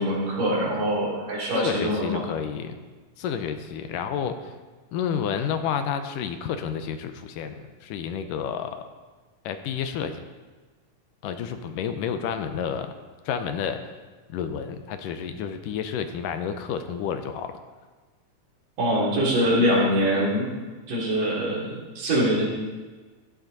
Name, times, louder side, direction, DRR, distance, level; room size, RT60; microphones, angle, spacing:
voice 1, 0.0-2.2 18.8-20.5 20.9-22.5, equal, 75° right, -4 dB, 4.8 m, -24 dB
voice 2, 1.5-2.8 3.2-4.5 4.9-8.8 9.5-10.2 11.2-12.9 13.2-13.8 14.3-17.6, left 7 dB, 80° left, 8 dB, 2.3 m, -30 dB
14.5 x 11.5 x 4.0 m, 1.3 s
omnidirectional pair, 3.9 m